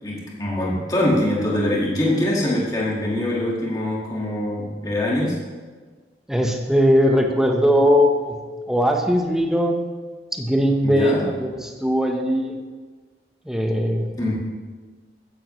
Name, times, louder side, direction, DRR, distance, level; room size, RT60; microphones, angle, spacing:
voice 1, 0.0-5.4 10.8-11.3 14.2-14.4, left 1 dB, 20° left, -5 dB, 1.9 m, -23 dB
voice 2, 6.3-8.4 8.7-9.8 10.3-12.5 13.4-14.2, equal, 5° right, 2 dB, 1.0 m, -19 dB
15.0 x 10.0 x 3.2 m, 1.4 s
head